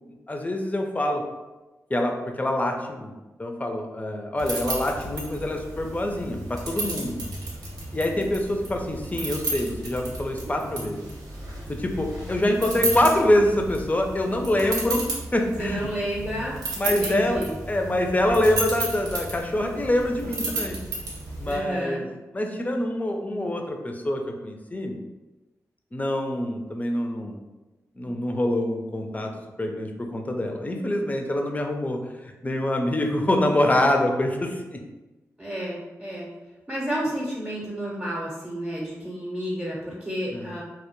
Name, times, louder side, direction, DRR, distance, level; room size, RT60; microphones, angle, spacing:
voice 1, 0.3-1.2 1.9-3.1 3.4-7.2 7.9-11.0 11.7-15.9 16.7-20.8 21.4-22.1 22.3-25.0 25.9-27.4 28.0-34.8 40.3-40.5, left 1 dB, 25° left, 3 dB, 0.4 m, -25 dB
sound 1, 4.4-21.6, right 2 dB, 90° right, 0.6 m, -33 dB
voice 2, 15.6-16.6 16.8-17.5 21.4-22.0 35.4-36.3 36.7-40.6, equal, 15° right, -6 dB, 0.7 m, -31 dB
2.1 x 2.0 x 2.9 m, 1.1 s
supercardioid pair, 40°, 7 cm